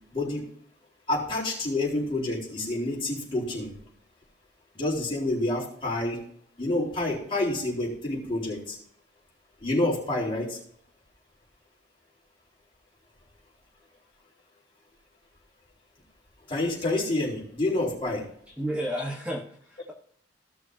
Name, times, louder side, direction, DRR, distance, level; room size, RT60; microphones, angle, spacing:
voice 1, 0.1-0.4 1.1-3.7 4.7-6.2 6.6-8.8 9.6-10.6 16.5-18.2, left 2 dB, 30° left, -5 dB, 4.2 m, -28 dB
voice 2, 18.6-19.9, equal, 5° right, -2 dB, 1.3 m, -32 dB
16.5 x 6.3 x 2.8 m, 0.64 s
head